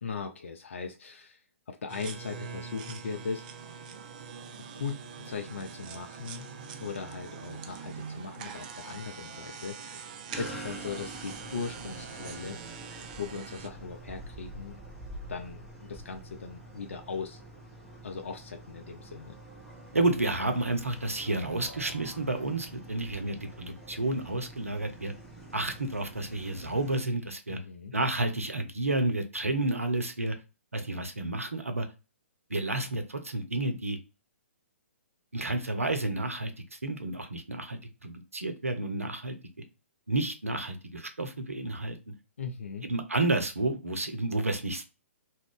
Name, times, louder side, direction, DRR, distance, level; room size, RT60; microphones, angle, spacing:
voice 1, 0.0-3.4 4.8-6.5 6.8-10.0 10.4-12.6 12.9-14.8 15.3-17.4 18.0-19.3 27.5-27.9 42.4-42.9, left 5 dB, 65° left, 5 dB, 0.4 m, -39 dB
sound 1, 1.9-13.7, right 6 dB, 35° right, 0.3 m, -43 dB
sound 2, 10.3-27.0, right 1 dB, ahead, 0.9 m, -46 dB
voice 2, 19.9-25.1 25.5-27.6 27.9-30.4 30.7-31.9 32.5-34.0 35.3-39.4 40.1-42.0 42.8-44.8, right 2 dB, 80° right, 6 dB, 0.6 m, -30 dB
2.4 x 2.1 x 3.5 m, 0.30 s
figure-of-eight pair, 125°, 7 cm